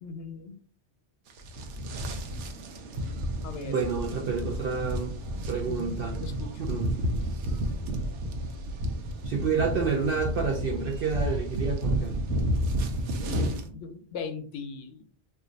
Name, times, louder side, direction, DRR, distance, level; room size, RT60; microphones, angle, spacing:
voice 1, 0.0-0.5 3.4-3.8 5.7-6.5 13.2-15.0, left 5 dB, 75° left, 8 dB, 0.9 m, -39 dB
sound 1, 1.3-13.7, equal, 85° right, 0.9 m, -31 dB
voice 2, 3.6-5.1 5.5-6.2 6.7-6.9 9.2-12.2, right 5 dB, 60° right, 0 dB, 0.7 m, -29 dB
2.5 x 2.4 x 3.8 m, 0.44 s
omnidirectional pair, 1.2 m